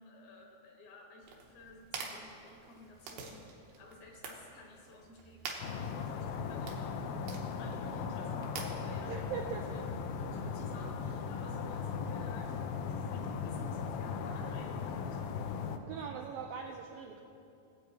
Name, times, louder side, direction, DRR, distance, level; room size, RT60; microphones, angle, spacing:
voice 1, 0.0-7.1 7.6-9.2 9.5-9.8 10.2-15.3 15.9-16.8, left 2 dB, 70° left, 0 dB, 2.7 m, -53 dB
sound 1, 1.2-10.2, right 4 dB, 70° right, 2.5 m, -48 dB
sound 2, 5.6-15.8, left 6 dB, 85° left, 2.1 m, -38 dB
voice 2, 9.1-9.6 15.9-17.2, right 7 dB, 85° right, 2 dB, 2.0 m, -40 dB
20.0 x 8.0 x 3.1 m, 2.6 s
omnidirectional pair, 4.7 m